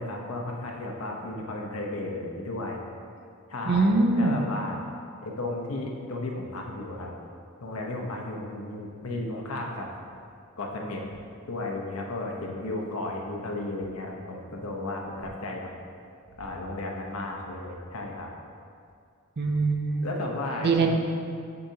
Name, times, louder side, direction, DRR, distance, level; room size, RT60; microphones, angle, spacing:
voice 1, 0.0-2.8 3.5-4.8 5.2-7.1 7.6-9.9 10.6-11.1 11.5-15.7 16.4-18.3 20.0-20.9, left 2 dB, 80° left, 0 dB, 0.9 m, -34 dB
voice 2, 3.7-4.4 19.4-20.1 20.6-20.9, right 3 dB, 50° right, 3 dB, 0.6 m, -23 dB
7.1 x 6.6 x 2.8 m, 2.3 s
head